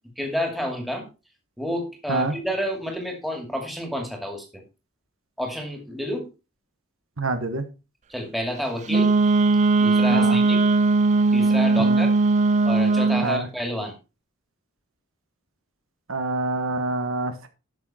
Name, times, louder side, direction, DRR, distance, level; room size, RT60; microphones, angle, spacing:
voice 1, 0.2-1.1 1.6-4.6 5.4-6.3 8.1-9.1 9.8-10.6 11.3-12.1 12.6-13.9, equal, ahead, 4 dB, 2.4 m, -29 dB
voice 2, 7.2-7.7 10.1-10.4 11.8-12.0 13.2-13.5 16.1-17.5, right 2 dB, 70° right, 8 dB, 1.3 m, -26 dB
Wind instrument woodwind instrument, 8.9-13.3, right 3 dB, 35° right, 0.4 m, -19 dB
12.5 x 6.4 x 4.3 m, 0.29 s
head